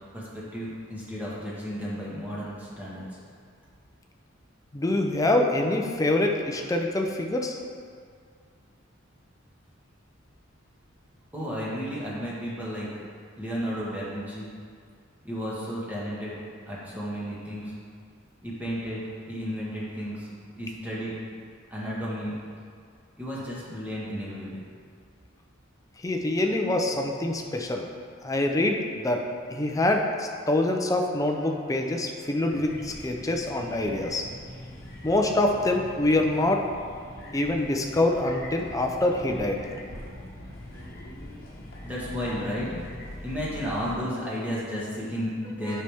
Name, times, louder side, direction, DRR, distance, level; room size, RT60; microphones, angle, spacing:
voice 1, 0.1-3.0 11.3-12.9 13.4-14.5 15.2-16.4 16.7-17.7 18.4-20.3 20.5-21.2 21.7-22.3 23.2-24.6 41.8-45.8, equal, 10° right, -7 dB, 1.5 m, -33 dB
voice 2, 4.7-7.6 26.0-27.9 28.2-34.2 35.0-36.6 37.3-39.7 45.7-45.8, left 1 dB, 15° left, 2 dB, 0.5 m, -25 dB
sound 1, 32.5-44.0, left 1 dB, 50° left, 1.2 m, -42 dB
7.9 x 5.7 x 3.5 m, 2.2 s
head